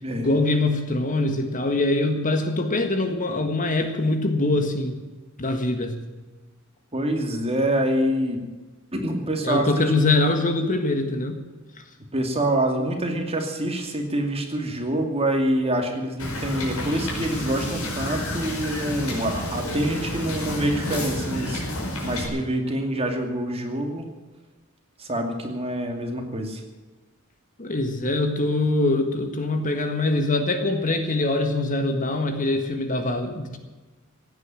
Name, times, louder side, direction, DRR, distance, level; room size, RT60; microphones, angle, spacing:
voice 1, 0.2-5.0 5.4-6.0 9.4-11.4 27.6-33.6, left 2 dB, 40° left, 7 dB, 1.7 m, -23 dB
voice 2, 6.9-8.4 8.9-9.6 12.1-21.6 22.0-24.1 25.0-26.6, right 1 dB, 30° right, 3 dB, 2.6 m, -26 dB
Wind / Boat Water vehicle, 16.2-22.3, left 1 dB, 85° left, 5.0 m, -30 dB
16.5 x 9.3 x 8.9 m, 1.2 s
head